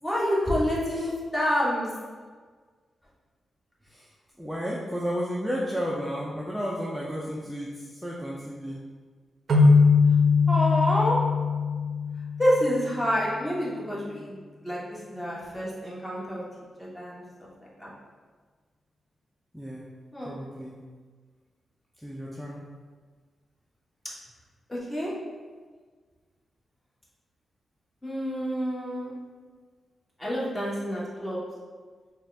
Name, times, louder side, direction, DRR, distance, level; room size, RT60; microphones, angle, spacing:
voice 1, 0.0-1.9 10.5-11.2 12.4-14.4 14.6-16.4 16.8-17.2 17.6-17.9 20.1-20.4 24.7-25.1 28.0-29.1 30.2-31.4, equal, 15° left, -6 dB, 1.1 m, -28 dB
voice 2, 4.4-8.8 19.5-19.9 20.2-20.8 22.0-22.6, equal, ahead, -5 dB, 0.5 m, -33 dB
sound 1, 9.5-13.0, left 4 dB, 55° right, 0.5 m, -21 dB
4.2 x 2.4 x 3.3 m, 1.5 s
cardioid pair, 100°, 0 cm